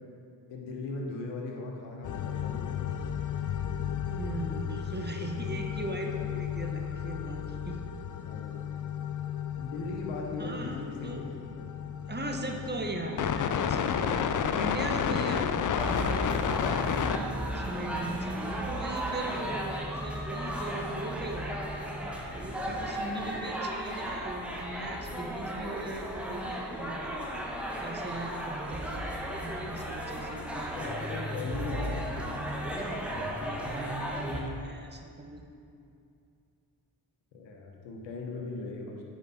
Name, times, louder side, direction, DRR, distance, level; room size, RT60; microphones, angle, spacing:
voice 1, 0.5-3.0 8.2-8.7 9.5-11.1 11.5-11.8 16.9-17.5 22.5-22.9 30.7-32.3 37.3-39.0, left 3 dB, 85° left, 1 dB, 1.1 m, -39 dB
sound 1, 2.0-17.2, left 8 dB, 45° left, 0.5 m, -32 dB
voice 2, 4.2-7.8 10.4-11.2 12.1-16.0 16.7-17.0 17.5-21.5 22.3-27.2 27.8-31.1 33.4-35.4, right 2 dB, 25° right, 3 dB, 1.1 m, -39 dB
sound 2, 15.8-34.4, equal, 5° right, 1.3 m, -35 dB
9.6 x 4.9 x 4.2 m, 2.5 s
supercardioid pair, 45°, 44 cm